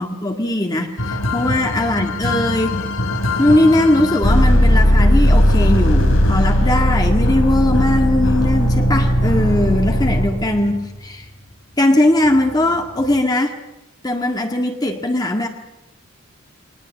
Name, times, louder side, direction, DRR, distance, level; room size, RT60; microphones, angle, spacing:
voice 1, 0.0-2.8 3.4-11.3 11.8-13.5 14.0-15.5, left 1 dB, 20° left, 3 dB, 1.8 m, -19 dB
sound 1, 1.0-10.8 12.3-12.5 13.0-13.1, equal, 80° left, 4.0 m, -17 dB
22.5 x 19.5 x 8.4 m, 0.91 s
head